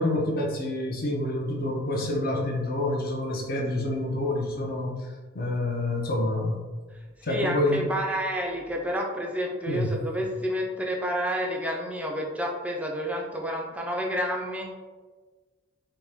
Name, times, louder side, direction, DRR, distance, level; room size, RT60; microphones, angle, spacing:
voice 1, 0.0-5.0 5.3-6.6 7.2-7.9 9.7-10.0, left 1 dB, 45° left, 0 dB, 0.6 m, -27 dB
voice 2, 7.2-14.7, equal, 5° right, 0 dB, 0.4 m, -29 dB
4.2 x 2.1 x 3.4 m, 1.4 s
head